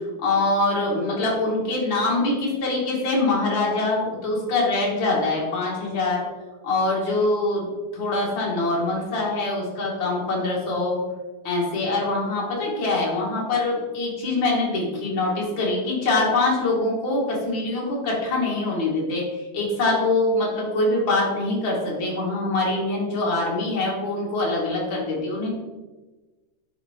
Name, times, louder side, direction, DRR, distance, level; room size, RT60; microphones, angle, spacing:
voice 1, 0.2-6.2 6.6-7.7 7.9-11.0 11.4-25.5, left 2 dB, 60° left, -4 dB, 2.7 m, -24 dB
8.5 x 4.5 x 4.4 m, 1.2 s
omnidirectional pair, 2.4 m